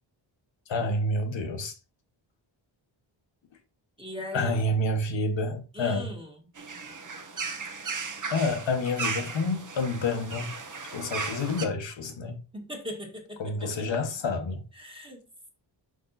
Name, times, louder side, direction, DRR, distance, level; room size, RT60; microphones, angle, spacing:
voice 1, 0.7-1.7 4.3-6.1 8.3-10.5 10.9-12.4 13.4-14.6, left 2 dB, 65° left, 1.2 m, -28 dB
voice 2, 4.0-4.6 5.7-6.5 12.5-13.9 14.7-15.2, left 1 dB, 10° right, 1.7 m, -40 dB
sound 1, 6.6-11.7, right 4 dB, 40° right, 1.1 m, -36 dB
6.5 x 5.3 x 4.0 m
wide cardioid pair, 160°, 47 cm